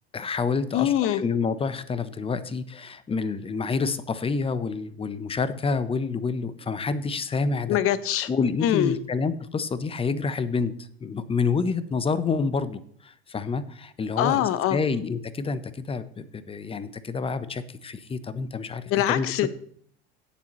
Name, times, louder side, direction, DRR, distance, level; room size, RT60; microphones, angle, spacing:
voice 1, 0.1-7.8 8.3-10.7 11.0-19.5, left 4 dB, 20° left, 0.9 m, -28 dB
voice 2, 0.7-1.2 7.7-8.3 8.6-8.9 14.2-14.8 18.9-19.5, left 12 dB, 45° left, 1.1 m, -23 dB
17.0 x 7.3 x 3.1 m
hypercardioid pair, 90°, 31 cm